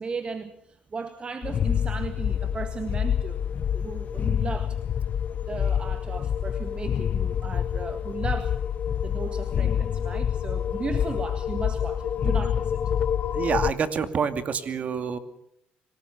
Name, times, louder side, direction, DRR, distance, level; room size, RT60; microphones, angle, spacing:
voice 1, 0.0-3.4 3.7-4.8 5.5-8.6 9.0-12.8, right 4 dB, 35° right, 9 dB, 1.8 m, -36 dB
sound 1, 1.4-13.7, left 8 dB, 55° left, 1.0 m, -27 dB
voice 2, 13.3-15.2, right 6 dB, 50° right, 9 dB, 2.4 m, -27 dB
25.5 x 18.5 x 7.0 m, 0.74 s
cardioid pair, 85°, 3 cm